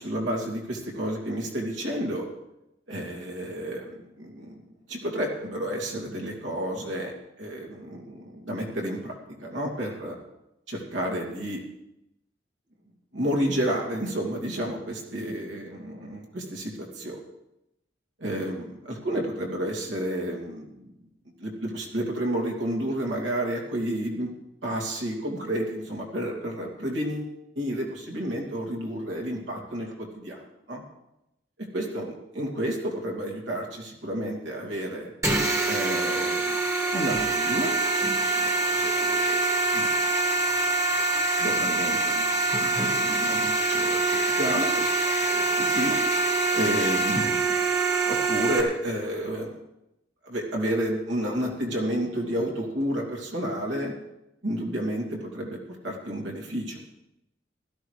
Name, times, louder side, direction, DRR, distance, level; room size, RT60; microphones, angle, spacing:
voice 1, 0.0-2.3 2.9-10.2 10.7-11.6 13.1-17.2 18.2-20.9 21.4-24.3 24.6-30.4 30.7-30.8 31.7-35.1 35.7-36.6 36.9-37.8 38.0-39.4 39.7-39.9 41.4-42.3 42.6-46.0 46.5-47.6 48.0-49.6 50.2-53.9 54.4-56.8, equal, 90° right, -1 dB, 2.7 m, -31 dB
sound 1, 35.2-48.6, right 3 dB, 15° right, 1.2 m, -25 dB
16.5 x 13.0 x 3.3 m, 0.88 s
head